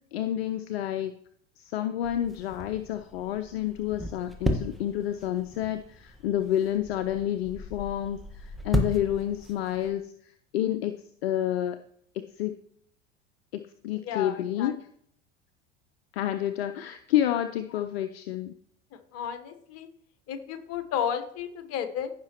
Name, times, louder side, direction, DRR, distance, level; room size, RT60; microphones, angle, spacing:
voice 1, 0.1-1.1 1.6-11.8 12.3-12.6 13.5-14.9 16.1-18.6, left 11 dB, 65° left, 10 dB, 0.6 m, -29 dB
sound 1, 2.0-9.9, equal, ahead, 1.4 m, -35 dB
voice 2, 14.0-14.7 18.9-19.9 20.3-22.1, left 9 dB, 45° left, 10 dB, 1.1 m, -33 dB
15.0 x 5.9 x 3.0 m, 0.66 s
figure-of-eight pair, 75°, 33 cm